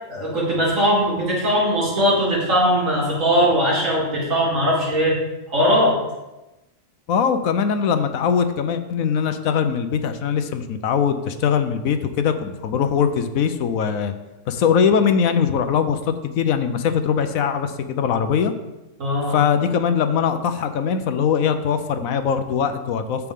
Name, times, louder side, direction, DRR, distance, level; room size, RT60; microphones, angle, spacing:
voice 1, 0.1-5.2 5.5-6.0 19.0-19.4, equal, 65° right, -6 dB, 3.2 m, -20 dB
voice 2, 7.1-14.1 14.5-18.5 19.3-23.3, left 7 dB, 80° left, 9 dB, 1.1 m, -21 dB
14.0 x 4.7 x 3.6 m, 1.0 s
omnidirectional pair, 1.4 m